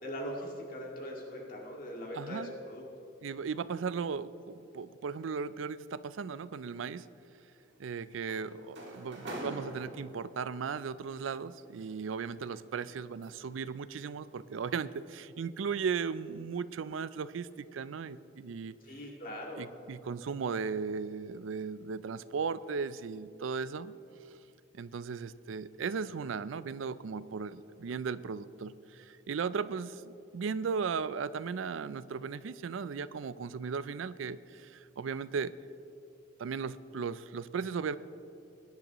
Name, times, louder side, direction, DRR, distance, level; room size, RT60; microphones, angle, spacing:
voice 1, 0.0-2.8 18.8-19.6, equal, 45° left, -2 dB, 2.0 m, -41 dB
voice 2, 2.1-2.5 3.2-7.1 7.8-18.7 19.6-23.9 24.7-35.5 36.4-38.0, right 5 dB, 80° right, 16 dB, 0.4 m, -36 dB
sound 1, 7.6-10.6 11.7-13.6 14.0-14.3 14.7-15.0, right 1 dB, 60° right, 2.0 m, -45 dB
22.5 x 10.5 x 3.0 m, 2.7 s
head